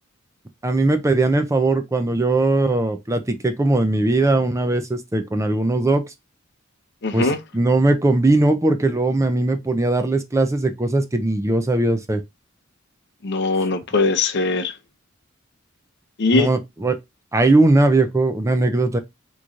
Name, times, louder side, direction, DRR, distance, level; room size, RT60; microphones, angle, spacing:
voice 1, 0.6-6.0 7.1-7.3 7.5-12.2 16.3-17.0 17.3-19.0, right 2 dB, 15° right, 0.5 m, -19 dB
voice 2, 7.0-7.4 13.2-14.7 16.2-16.5, left 3 dB, 55° left, 0.6 m, -20 dB
3.7 x 3.0 x 2.5 m
head